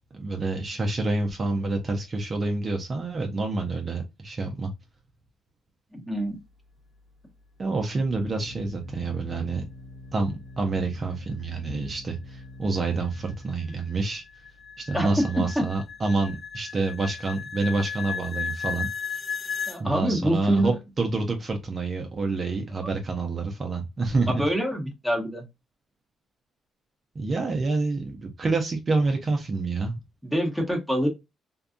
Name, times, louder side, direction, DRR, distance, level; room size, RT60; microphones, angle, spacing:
voice 1, 0.1-4.7 7.6-9.6 10.1-14.2 14.8-18.9 19.8-24.4 27.1-30.0, right 3 dB, 35° right, 0.5 m, -28 dB
voice 2, 5.9-6.4 14.9-15.1 15.6-15.7 19.7-20.7 24.3-25.5 30.2-31.1, equal, ahead, 1.0 m, -26 dB
Organ, 6.1-16.6, left 2 dB, 70° right, 0.7 m, -46 dB
sound 1, 12.6-19.8, left 6 dB, 30° left, 0.8 m, -35 dB
2.6 x 2.2 x 2.4 m
cardioid pair, 90°, 0 cm